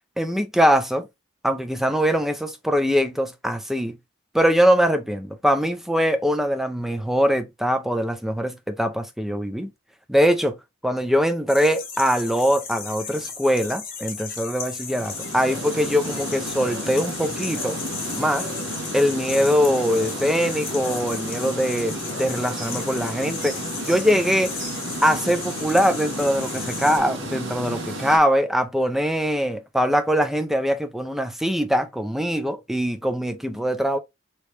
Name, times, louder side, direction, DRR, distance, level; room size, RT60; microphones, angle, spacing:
voice 1, 0.2-1.1 1.4-4.0 4.3-9.7 10.1-10.6 10.8-17.8 18.2-18.4 18.9-24.5 25.0-34.0, equal, ahead, 0.5 m, -22 dB
sound 1, 11.5-27.0, left 5 dB, 50° left, 1.1 m, -35 dB
sound 2, 14.8-28.2, right 1 dB, 85° right, 1.4 m, -32 dB
3.3 x 3.0 x 3.1 m
head